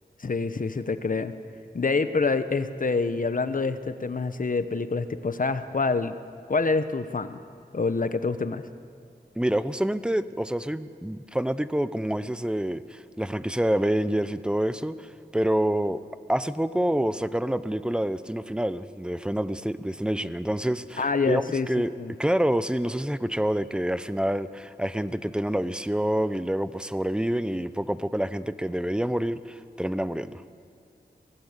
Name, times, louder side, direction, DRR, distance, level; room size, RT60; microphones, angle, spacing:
voice 1, 0.2-1.3 1.7-6.1 6.5-7.4 7.7-8.6 21.0-21.7 22.0-22.1, left 4 dB, 50° left, 11 dB, 1.2 m, -26 dB
voice 2, 9.4-16.0 16.3-21.9 22.2-30.4, right 1 dB, 5° right, 14 dB, 0.8 m, -27 dB
23.5 x 17.5 x 8.3 m, 2.3 s
wide cardioid pair, 65°, 17 cm